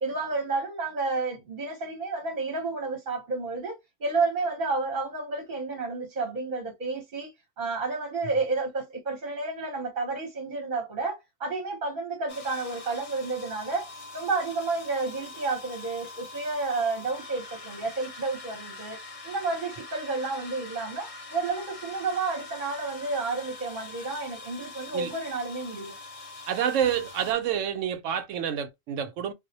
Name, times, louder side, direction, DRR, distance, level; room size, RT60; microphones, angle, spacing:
voice 1, 0.0-19.0 19.2-25.9, right 3 dB, 45° right, 0.9 m, -31 dB
sound 1, 12.3-27.3, left 3 dB, 50° left, 0.4 m, -43 dB
voice 2, 26.5-29.3, right 9 dB, 75° right, 0.9 m, -28 dB
2.3 x 2.0 x 2.7 m
omnidirectional pair, 1.3 m